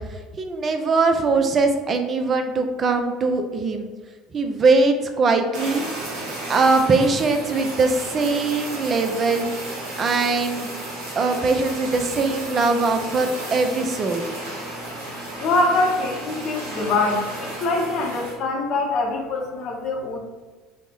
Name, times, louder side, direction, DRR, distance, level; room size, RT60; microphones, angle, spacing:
voice 1, 0.1-3.9 4.3-5.8 6.5-9.5 10.0-10.7 11.2-14.3, right 3 dB, 35° right, 6 dB, 0.3 m, -21 dB
Fire, 5.5-18.4, right 2 dB, 70° right, 0.8 m, -33 dB
voice 2, 15.4-20.2, left 2 dB, 50° left, 1 dB, 0.7 m, -24 dB
3.0 x 2.0 x 3.4 m, 1.3 s
figure-of-eight pair, 65°, 0 cm